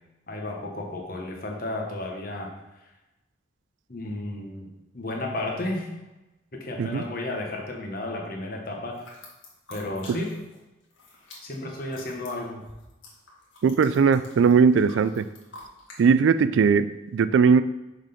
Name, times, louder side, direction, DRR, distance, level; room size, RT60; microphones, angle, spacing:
voice 1, 0.3-2.5 3.9-4.7 4.9-5.9 6.5-9.0 9.7-10.3 11.4-12.7, left 2 dB, 45° left, 0 dB, 1.1 m, -33 dB
sound 1, 8.9-10.6 10.8-16.0, left 2 dB, 75° left, 1.7 m, -48 dB
voice 2, 13.6-15.3 16.0-17.6, right 5 dB, 70° right, 14 dB, 0.3 m, -19 dB
6.4 x 4.0 x 5.1 m, 1.0 s
head